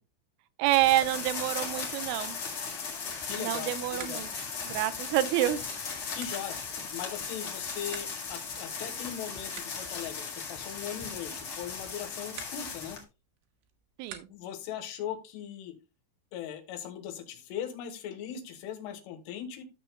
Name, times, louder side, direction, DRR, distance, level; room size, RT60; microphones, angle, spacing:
voice 1, 0.6-2.4 3.4-5.7 14.0-14.3, right 15 dB, 90° right, 3.3 m, -28 dB
sound 1, 0.7-13.0, left 5 dB, 65° left, 1.4 m, -37 dB
sound 2, 2.3-14.7, right 9 dB, 70° right, 2.5 m, -53 dB
voice 2, 3.2-4.3 6.1-6.6 6.9-13.0 14.3-15.8 16.3-19.6, left 9 dB, 80° left, 3.8 m, -39 dB
12.5 x 6.9 x 2.3 m
omnidirectional pair, 5.7 m